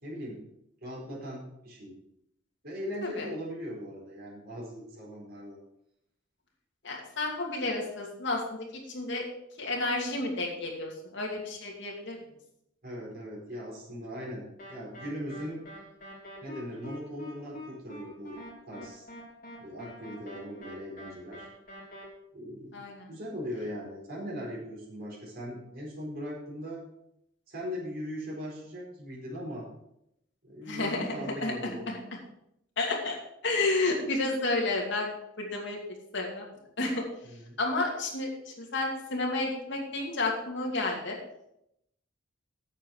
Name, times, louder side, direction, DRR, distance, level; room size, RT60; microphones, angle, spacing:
voice 1, 0.0-0.4 0.8-1.9 2.6-5.6 12.8-15.6 16.4-18.4 18.7-19.0 19.6-21.5 22.3-26.8 27.5-29.7 30.4-31.9 37.2-37.6, equal, 50° right, -3 dB, 4.5 m, -39 dB
voice 2, 6.8-9.2 9.6-12.2 22.7-23.0 30.7-32.0 32.8-33.2 33.4-35.8 36.1-37.0 37.6-41.2, left 2 dB, 60° left, 0 dB, 2.7 m, -31 dB
sound 1, 14.6-22.0, left 1 dB, 45° left, 3.3 m, -45 dB
9.0 x 7.7 x 6.4 m, 0.79 s
head